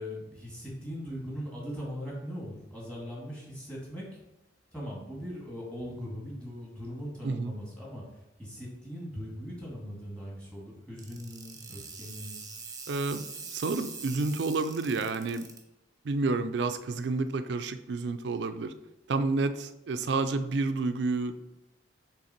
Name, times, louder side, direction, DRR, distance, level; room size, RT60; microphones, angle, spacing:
voice 1, 0.0-4.2 4.7-8.0 8.4-12.4, equal, 5° left, -4 dB, 2.0 m, -40 dB
voice 2, 7.2-7.5 12.9-13.2 13.5-15.5 16.0-18.7 19.1-21.4, right 3 dB, 65° right, 10 dB, 0.4 m, -30 dB
sound 1, 11.0-15.6, right 5 dB, 20° right, 0.8 m, -43 dB
6.4 x 3.4 x 4.4 m, 0.92 s
head